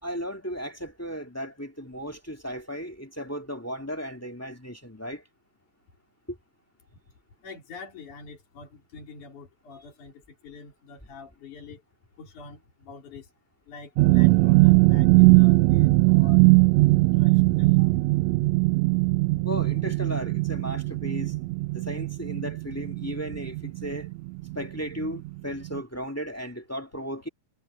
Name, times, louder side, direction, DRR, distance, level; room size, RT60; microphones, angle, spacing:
voice 1, 0.0-5.2 6.3-6.4 19.4-21.3 21.7-24.1 24.5-27.3, equal, 5° left, 1.3 m, -35 dB
voice 2, 7.4-11.8 12.2-13.3 13.7-16.4 16.9-18.2, left 4 dB, 70° left, 5.5 m, -46 dB
sound 1, 14.0-24.7 25.0-25.3 25.7-25.8, right 22 dB, 80° right, 1.6 m, -20 dB
omnidirectional pair, 3.6 m